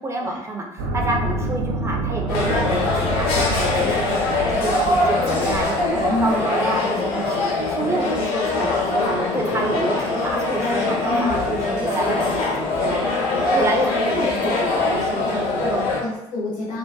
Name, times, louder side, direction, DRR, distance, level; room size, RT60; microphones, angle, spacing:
voice 1, 0.0-4.2 4.5-7.4 7.7-13.0 13.3-15.8, right 2 dB, 15° right, 1 dB, 0.5 m, -28 dB
sound 1, 0.8-6.3, right 1 dB, 70° right, 0.5 m, -28 dB
sound 2, 2.3-16.0, left 2 dB, 60° left, 0.6 m, -22 dB
voice 2, 6.1-6.5 11.1-11.4 15.3-16.8, left 2 dB, 75° left, -6 dB, 1.0 m, -28 dB
2.5 x 2.1 x 2.3 m, 0.92 s
figure-of-eight pair, 55°, 17 cm